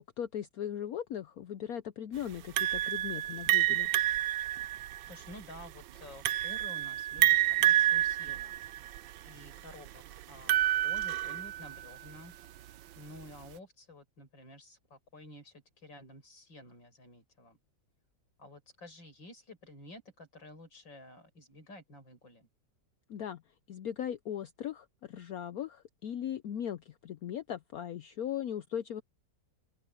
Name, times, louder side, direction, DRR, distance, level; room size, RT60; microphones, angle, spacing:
voice 1, 0.0-3.9 23.1-23.4 23.7-29.0, left 9 dB, 65° left, 1.0 m, -38 dB
sound 1, 2.6-11.9, right 14 dB, 85° right, 1.4 m, -29 dB
voice 2, 5.0-9.0 9.2-10.6 10.8-12.3 13.0-17.6 18.4-22.5, left 1 dB, 85° left, 7.0 m, -51 dB
open air
omnidirectional pair, 2.0 m